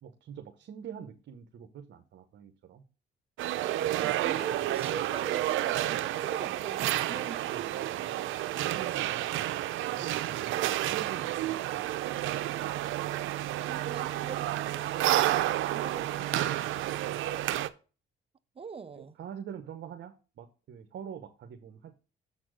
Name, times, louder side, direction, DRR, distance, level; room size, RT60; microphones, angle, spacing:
voice 1, 0.0-2.8 4.0-4.8 7.4-8.3 8.6-9.5 9.9-12.3 18.9-22.0, right 8 dB, 65° right, 1.0 m, -45 dB
sound 1, 3.4-17.7, right 14 dB, 85° right, 0.6 m, -30 dB
voice 2, 4.0-7.8 13.7-16.5 18.6-19.2, right 6 dB, 30° right, 0.7 m, -43 dB
7.3 x 4.2 x 6.3 m
cardioid pair, 90°, 20 cm